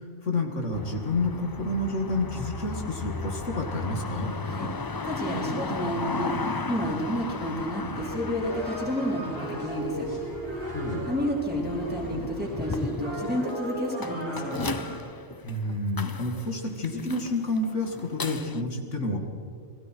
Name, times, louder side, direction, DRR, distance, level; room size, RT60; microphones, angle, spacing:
voice 1, 0.0-4.3 10.7-11.0 15.4-19.2, left 2 dB, 85° left, 2 dB, 2.7 m, -29 dB
sound 1, 0.7-18.6, left 4 dB, 30° left, 0.4 m, -36 dB
voice 2, 5.0-6.3 6.6-10.1 11.0-14.7, equal, 10° right, -4 dB, 4.2 m, -30 dB
sound 2, 7.9-15.0, right 1 dB, 55° right, 7.9 m, -36 dB
28.5 x 20.5 x 4.7 m, 2.4 s
omnidirectional pair, 1.2 m